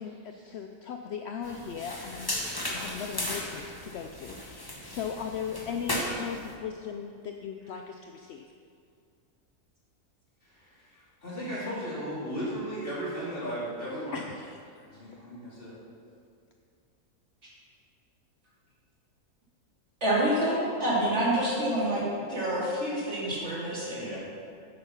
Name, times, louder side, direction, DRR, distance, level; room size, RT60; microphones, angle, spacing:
voice 1, 0.0-2.4 2.7-8.4 14.1-14.9, left 7 dB, 70° left, 4 dB, 0.6 m, -38 dB
sound 1, 1.4-6.5, left 1 dB, 15° left, 1.2 m, -36 dB
voice 2, 10.4-14.2 14.9-15.8 21.1-21.3 23.9-24.2, equal, 35° left, -8 dB, 3.1 m, -36 dB
voice 3, 20.0-22.0 22.3-24.1, right 1 dB, 45° right, -7 dB, 3.0 m, -27 dB
9.6 x 8.1 x 5.7 m, 2.3 s
omnidirectional pair, 1.6 m